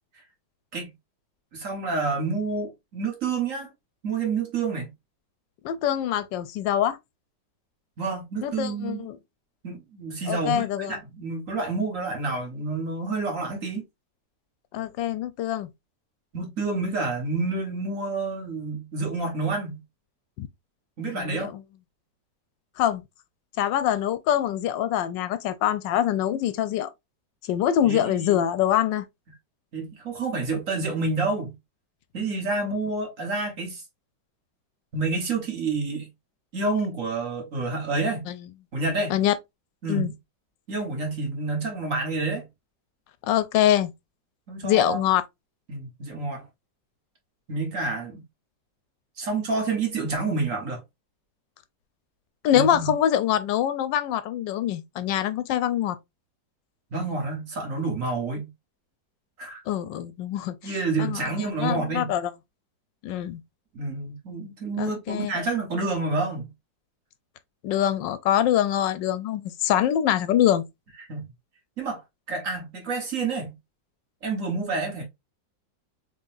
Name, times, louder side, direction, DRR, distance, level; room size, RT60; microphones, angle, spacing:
voice 1, 1.5-3.7 4.0-4.9 8.0-9.0 9.6-13.8 16.3-19.8 21.0-21.5 27.8-28.4 29.7-31.5 32.1-33.8 34.9-36.1 36.5-38.3 38.7-39.2 39.8-40.1 40.7-42.5 44.5-45.0 45.7-46.4 47.5-48.2 49.2-50.8 52.5-52.9 56.9-58.5 59.4-59.6 60.6-62.1 63.7-66.5 71.1-71.3 71.8-72.0 72.3-73.5 74.2-75.0, right 3 dB, 50° right, 1.5 m, -28 dB
voice 2, 5.6-7.0 8.4-9.2 10.3-10.9 14.7-15.7 20.4-20.5 21.1-21.6 22.8-23.0 23.6-26.9 27.4-29.1 38.3-38.5 39.1-39.3 39.9-40.1 43.2-43.9 44.6-45.2 52.4-56.0 59.7-62.3 63.0-63.4 64.8-65.3 67.6-70.7, left 11 dB, 80° left, 1.2 m, -24 dB
3.8 x 3.5 x 2.5 m
omnidirectional pair, 1.9 m